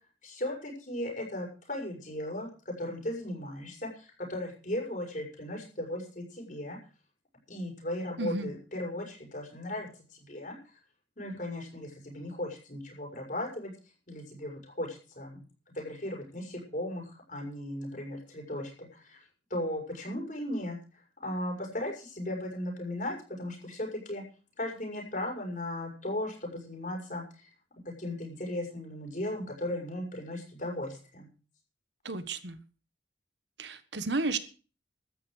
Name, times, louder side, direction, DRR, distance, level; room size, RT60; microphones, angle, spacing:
voice 1, 0.2-6.8 7.5-10.5 11.2-13.7 14.1-15.4 15.7-19.2 19.5-20.8 21.2-24.2 24.6-27.5 27.8-31.3, left 1 dB, 45° left, 1 dB, 6.4 m, -37 dB
voice 2, 8.2-8.5 32.0-32.6 33.6-34.4, right 3 dB, 70° right, 11 dB, 1.5 m, -32 dB
13.5 x 9.9 x 6.5 m, 0.37 s
head